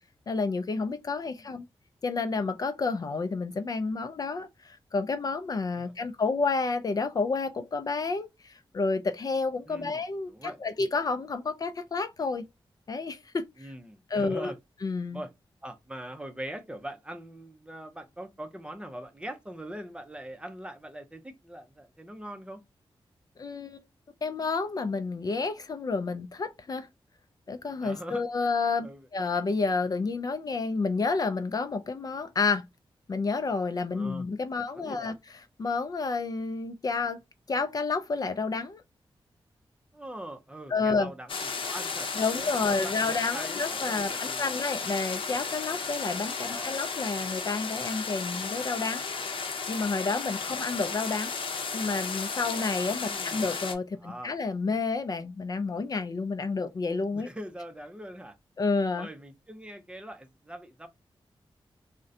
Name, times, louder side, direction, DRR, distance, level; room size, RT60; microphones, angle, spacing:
voice 1, 0.3-1.7 2.0-12.4 12.9-13.7 14.1-14.5 14.8-15.2 23.4-23.8 24.2-26.9 27.5-28.9 29.1-32.6 33.1-37.2 37.5-38.8 40.7-41.1 42.2-51.4 51.7-57.3 58.6-59.1, left 4 dB, 45° left, 0.3 m, -30 dB
voice 2, 9.7-10.0 10.3-10.6 13.6-14.6 15.1-15.3 15.6-22.6 27.8-28.2 28.8-29.1 33.9-34.2 34.7-35.1 39.9-41.3 41.6-44.5 46.3-46.8 50.5-50.6 53.0-53.4 54.0-54.3 57.1-58.4 59.0-60.9, right 1 dB, 10° right, 0.5 m, -42 dB
sound 1, 41.3-53.7, left 5 dB, 70° left, 0.7 m, -34 dB
3.7 x 2.1 x 2.6 m
wide cardioid pair, 130°, 9 cm